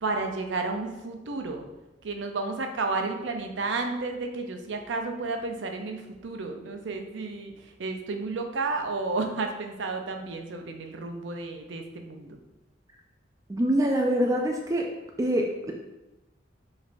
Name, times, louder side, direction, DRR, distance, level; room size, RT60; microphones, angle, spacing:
voice 1, 0.0-1.7 2.0-7.5 7.8-12.4, right 3 dB, 90° right, 4 dB, 0.5 m, -32 dB
voice 2, 13.5-14.9 15.2-15.7, right 1 dB, 20° right, 1 dB, 0.3 m, -25 dB
5.1 x 3.2 x 2.6 m, 1.0 s
head